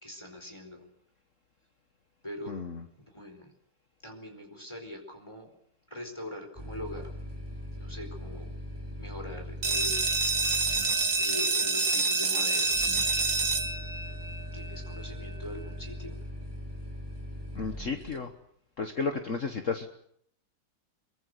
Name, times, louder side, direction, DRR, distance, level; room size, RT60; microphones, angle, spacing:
voice 1, 0.0-0.8 2.2-2.6 3.0-3.5 4.0-5.5 5.9-7.1 7.8-8.5 9.0-10.1 11.1-12.7 14.5-16.2, left 1 dB, 15° left, 3 dB, 4.5 m, -42 dB
voice 2, 2.5-2.8 17.5-18.3 18.8-19.9, left 4 dB, 45° left, 6 dB, 1.7 m, -33 dB
sound 1, 6.6-18.2, left 1 dB, 10° right, 5.4 m, -41 dB
sound 2, 9.6-15.1, right 4 dB, 50° right, 2.0 m, -27 dB
23.0 x 23.0 x 8.0 m, 0.68 s
omnidirectional pair, 2.0 m